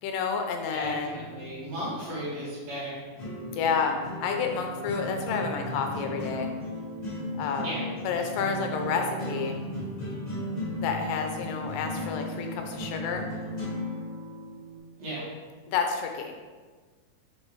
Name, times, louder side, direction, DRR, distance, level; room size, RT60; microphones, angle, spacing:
voice 1, 0.0-1.2 3.5-6.5 7.4-7.7 8.0-9.6 10.7-13.3 15.7-16.3, left 6 dB, 80° left, 4 dB, 2.2 m, -30 dB
voice 2, 0.7-3.0 7.6-7.9 15.0-15.3, equal, 55° right, -8 dB, 2.9 m, -35 dB
sound 1, 0.8-14.8, left 1 dB, 60° left, 0.4 m, -36 dB
6.2 x 5.8 x 3.1 m, 1.4 s
omnidirectional pair, 4.0 m